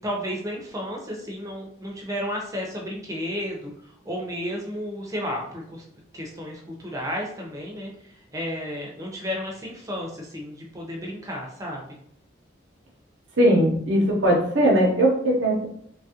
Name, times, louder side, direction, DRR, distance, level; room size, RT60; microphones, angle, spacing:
voice 1, 0.0-3.7 4.1-5.8 6.1-7.9 8.3-11.9, equal, 15° right, -1 dB, 0.5 m, -32 dB
voice 2, 13.4-15.6, right 1 dB, 80° right, -1 dB, 0.6 m, -19 dB
3.1 x 2.3 x 2.8 m, 0.71 s
head